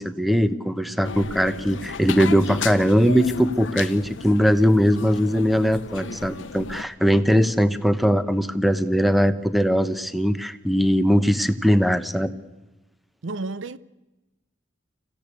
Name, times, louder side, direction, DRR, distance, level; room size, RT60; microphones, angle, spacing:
voice 1, 0.0-12.3, equal, ahead, 0.9 m, -20 dB
sound 1, 1.0-6.8, left 5 dB, 75° left, 0.9 m, -35 dB
voice 2, 13.2-13.8, right 3 dB, 75° right, 0.7 m, -31 dB
26.0 x 15.5 x 8.4 m
head